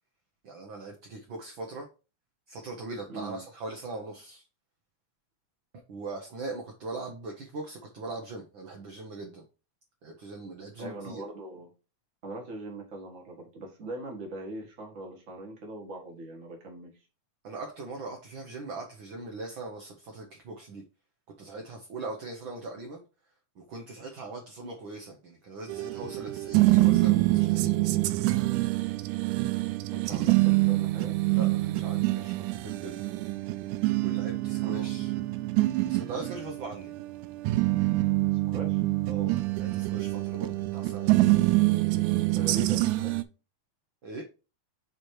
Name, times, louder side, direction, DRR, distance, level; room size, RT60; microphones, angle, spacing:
voice 1, 0.4-1.9 2.5-4.4 5.9-9.4 10.0-11.2 17.4-20.8 21.4-23.0 23.6-27.8 31.3-33.1 34.0-35.1 35.8-36.9 39.1-41.4 44.0-44.2, right 3 dB, 60° right, 1.3 m, -40 dB
voice 2, 3.1-3.4 10.8-11.7 12.2-16.9 29.9-31.2 34.6-34.9 38.5-38.8 42.3-43.1, right 2 dB, 35° right, 1.6 m, -41 dB
sound 1, 25.7-43.2, right 18 dB, 85° right, 2.1 m, -26 dB
7.5 x 3.2 x 4.7 m
omnidirectional pair, 3.5 m